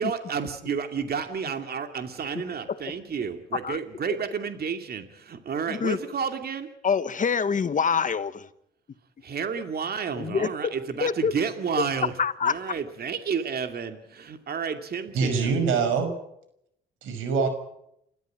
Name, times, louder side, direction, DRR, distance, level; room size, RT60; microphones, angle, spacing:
voice 1, 0.0-6.7 9.2-12.2 12.4-15.6, right 6 dB, 50° right, 7 dB, 2.5 m, -31 dB
voice 2, 6.8-8.5 10.1-10.7 11.0-11.3 12.2-12.6, left 6 dB, 40° left, 14 dB, 1.3 m, -25 dB
voice 3, 15.1-16.1 17.0-17.5, right 5 dB, 85° right, 8 dB, 5.8 m, -24 dB
29.0 x 13.5 x 8.8 m, 0.77 s
cardioid pair, 90°, 20 cm